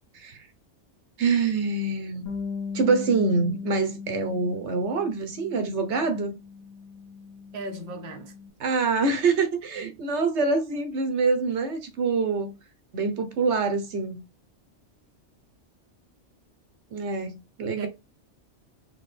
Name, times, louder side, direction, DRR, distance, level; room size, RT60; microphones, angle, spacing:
voice 1, 0.1-0.5 1.2-2.2 2.7-6.3 8.6-12.6 12.9-14.2 16.9-17.9, right 4 dB, 75° right, 1.1 m, -25 dB
Bass guitar, 2.3-8.5, left 5 dB, 15° left, 1.0 m, -38 dB
voice 2, 7.5-8.3 9.7-10.0 17.8-17.9, right 2 dB, 45° right, 1.0 m, -37 dB
4.2 x 2.9 x 3.2 m
omnidirectional pair, 1.2 m